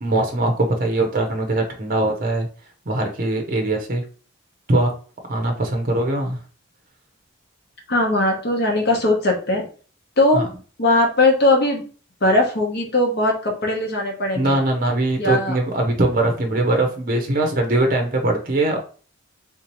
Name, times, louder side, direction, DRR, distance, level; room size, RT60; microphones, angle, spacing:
voice 1, 0.0-2.5 2.9-4.0 4.7-4.9 5.3-6.4 10.3-10.5 14.3-18.8, right 2 dB, 40° right, 3 dB, 0.6 m, -21 dB
voice 2, 7.9-9.7 10.2-10.4 10.8-11.8 12.2-14.6 15.2-15.6, left 2 dB, 50° left, 1 dB, 0.9 m, -19 dB
3.7 x 2.8 x 3.0 m, 0.39 s
head